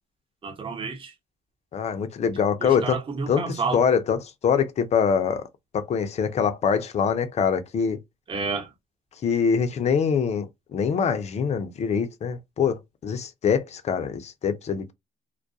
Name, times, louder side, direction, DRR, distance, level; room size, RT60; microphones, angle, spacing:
voice 1, 0.4-1.1 2.6-3.8 8.3-8.7, right 4 dB, 30° right, 0.9 m, -30 dB
voice 2, 1.7-3.0 3.3-5.5 5.7-8.0 9.2-10.5 10.7-14.9, left 6 dB, 40° left, 0.5 m, -24 dB
2.3 x 2.1 x 2.6 m
cardioid pair, 110°, 17 cm